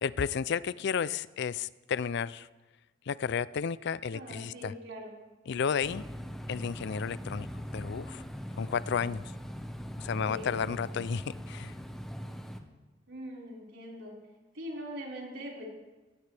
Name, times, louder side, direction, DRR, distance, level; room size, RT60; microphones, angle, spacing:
voice 1, 0.0-2.5 3.1-4.7 5.5-6.0 6.5-7.5 7.7-8.2 8.6-9.2 10.0-11.7, left 6 dB, 60° left, 18 dB, 0.4 m, -32 dB
voice 2, 4.1-5.2 10.2-10.9 13.1-14.1 14.5-15.6, equal, 65° right, -3 dB, 5.0 m, -42 dB
sound 1, 5.8-12.6, equal, ahead, 1.1 m, -41 dB
22.5 x 18.0 x 3.4 m, 1.2 s
head